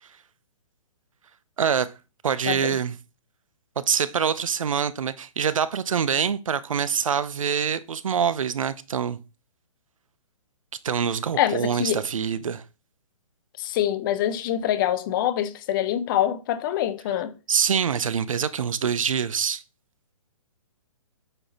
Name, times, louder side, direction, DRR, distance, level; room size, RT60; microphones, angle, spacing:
voice 1, 1.6-1.9 2.2-3.0 3.8-9.2 10.8-12.6 17.5-19.6, right 7 dB, 65° right, 0.8 m, -25 dB
voice 2, 2.4-2.8 11.4-12.0 13.6-17.3, left 11 dB, 35° left, 0.9 m, -25 dB
8.8 x 6.3 x 3.0 m
figure-of-eight pair, 130°, 18 cm